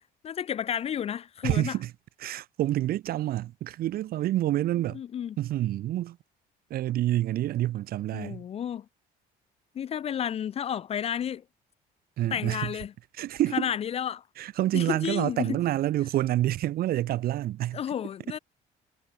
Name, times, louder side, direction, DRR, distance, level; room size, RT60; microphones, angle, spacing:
voice 1, 0.2-1.8 4.9-5.4 8.1-8.9 9.8-11.4 12.3-12.9 13.5-14.2 14.7-15.6 17.7-18.4, left 9 dB, 35° left, 0.4 m, -31 dB
voice 2, 1.4-1.9 2.2-5.0 5.4-6.2 6.7-8.4 12.2-12.7 13.2-13.7 14.4-17.8, right 14 dB, 65° right, 0.8 m, -28 dB
cardioid pair, 110°, 17 cm